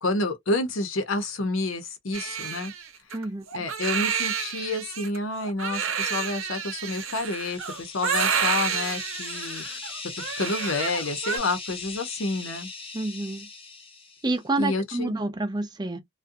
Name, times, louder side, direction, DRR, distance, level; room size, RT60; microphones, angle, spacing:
voice 1, 0.0-2.7 3.5-9.7 10.4-12.7 14.6-15.2, left 2 dB, 80° left, 0.8 m, -29 dB
Crying sobbing, 2.1-11.4, right 7 dB, 90° right, 0.7 m, -30 dB
voice 2, 3.1-3.4 12.9-13.5 14.2-16.0, right 2 dB, 20° right, 0.5 m, -28 dB
sound 1, 6.6-14.4, left 4 dB, 25° left, 0.7 m, -39 dB
2.5 x 2.2 x 2.6 m
head